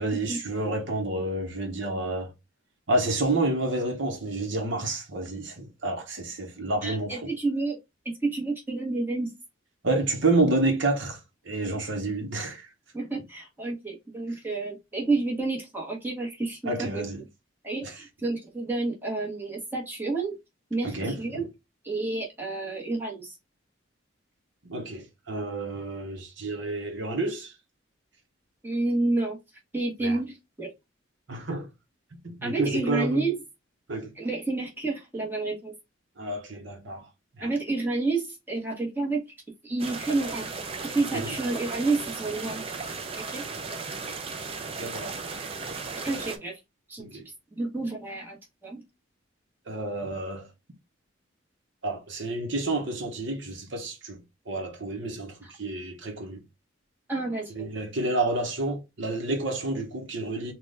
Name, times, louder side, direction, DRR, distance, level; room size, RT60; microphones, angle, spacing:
voice 1, 0.0-2.3 2.9-7.3 9.8-12.7 16.6-17.2 17.8-17.9 20.8-21.4 24.6-27.5 30.0-30.2 31.3-31.7 32.2-33.3 33.9-34.1 36.2-37.1 37.4-37.5 41.1-41.3 44.8-45.1 47.0-47.3 49.7-50.5 51.8-54.2 54.5-56.4 57.5-60.5, right 2 dB, 60° right, 0.9 m, -29 dB
voice 2, 6.8-7.8 8.0-9.3 12.9-17.0 17.6-20.4 20.7-21.5 21.8-23.4 28.6-29.4 29.7-30.7 32.4-33.4 34.2-35.7 37.4-39.2 39.6-40.5 40.8-42.6 43.2-43.4 46.0-46.6 46.9-47.2 47.5-48.4 48.6-48.8 55.4-55.5 57.1-57.7, right 3 dB, 10° right, 1.1 m, -29 dB
sound 1, 39.8-46.4, right 4 dB, 30° right, 0.5 m, -36 dB
3.9 x 2.3 x 3.3 m
head